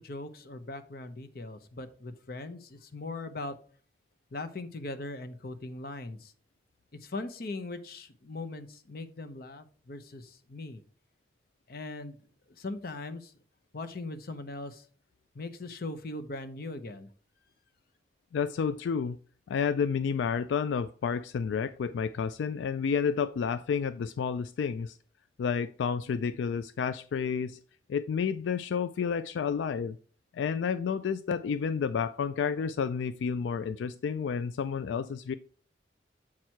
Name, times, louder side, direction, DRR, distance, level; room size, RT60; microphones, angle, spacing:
voice 1, 0.0-3.6 4.3-6.3 6.9-10.8 11.7-12.2 12.5-13.3 13.7-14.9 15.3-17.1, left 2 dB, 55° left, 0.7 m, -40 dB
voice 2, 18.3-19.2 19.5-25.0 25.4-27.6 27.9-30.0 30.3-35.3, left 6 dB, 85° left, 0.3 m, -30 dB
7.4 x 4.5 x 4.5 m
head